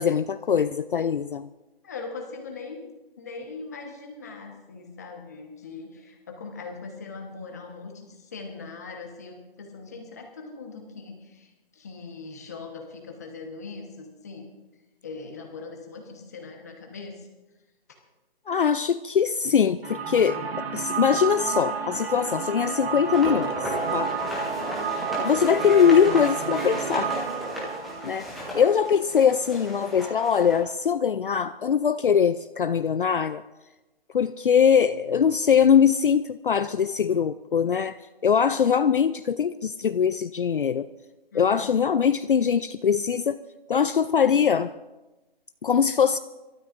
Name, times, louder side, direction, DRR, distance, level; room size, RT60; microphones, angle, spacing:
voice 1, 0.0-1.5 18.5-24.1 25.2-27.2 28.0-28.3 28.5-33.4 34.1-38.0 38.2-40.9 41.3-43.4 43.7-44.7 45.6-46.2, left 7 dB, 60° left, 12 dB, 0.5 m, -22 dB
voice 2, 1.8-2.8 3.2-14.4 15.0-17.3 41.3-41.7, left 4 dB, 15° left, 2 dB, 1.2 m, -40 dB
sound 1, 19.8-29.5, right 6 dB, 80° right, 1.9 m, -31 dB
sound 2, 23.0-30.6, equal, ahead, 0.5 m, -35 dB
26.5 x 13.0 x 2.6 m, 1.1 s
hypercardioid pair, 175°, 30 cm